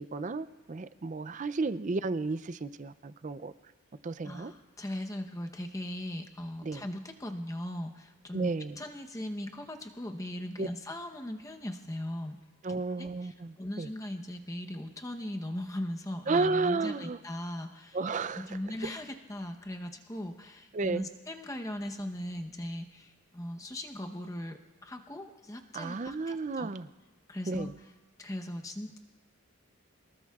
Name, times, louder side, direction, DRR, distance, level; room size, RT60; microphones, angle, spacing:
voice 1, 0.0-3.5 4.0-4.5 6.6-6.8 8.3-8.8 10.6-10.7 12.6-13.9 16.3-17.2 17.9-18.5 20.7-21.1 25.7-26.9 27.5-27.7, right 3 dB, 35° right, 14 dB, 0.4 m, -32 dB
voice 2, 4.2-8.5 8.8-12.4 13.0-18.0 18.4-26.7 27.3-27.7 28.2-29.0, left 1 dB, 15° left, 4 dB, 0.9 m, -39 dB
27.0 x 19.0 x 2.4 m, 1.2 s
head